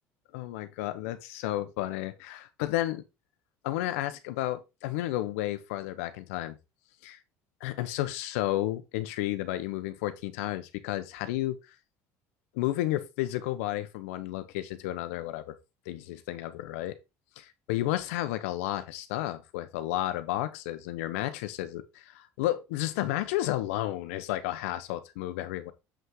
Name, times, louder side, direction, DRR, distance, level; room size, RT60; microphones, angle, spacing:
voice 1, 0.3-3.0 3.6-6.5 7.0-7.2 7.6-11.6 12.5-15.5 15.9-17.0 17.4-25.7, left 15 dB, 85° left, 1.0 m, -32 dB
7.5 x 5.6 x 3.8 m
supercardioid pair, 90°, 7 cm